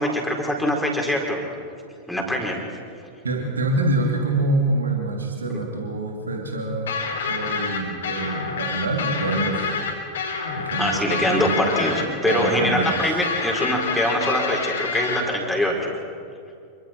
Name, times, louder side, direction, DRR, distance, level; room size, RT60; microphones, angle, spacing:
voice 1, 0.0-1.5 2.1-2.6 10.8-15.9, equal, 5° left, -1 dB, 4.4 m, -23 dB
voice 2, 3.2-6.9 7.3-9.7 10.5-12.0 12.2-13.2, right 2 dB, 75° right, 1 dB, 2.8 m, -26 dB
sound 1, 6.9-15.2, left 5 dB, 65° left, 3.6 m, -27 dB
27.5 x 23.5 x 4.5 m, 2.4 s
figure-of-eight pair, 90°, 0 cm